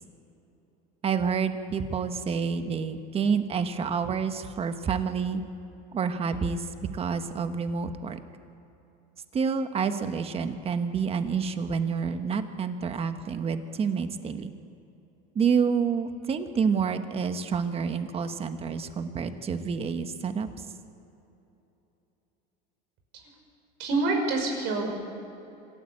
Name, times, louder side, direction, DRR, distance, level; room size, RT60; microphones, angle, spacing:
voice 1, 1.0-5.4 5.9-6.6 6.9-8.2 9.3-14.5 15.3-20.5, right 6 dB, 30° right, 8 dB, 1.4 m, -28 dB
voice 2, 23.8-24.9, right 3 dB, 60° right, 2 dB, 5.9 m, -26 dB
26.5 x 13.0 x 8.6 m, 3.0 s
supercardioid pair, 125°, 21 cm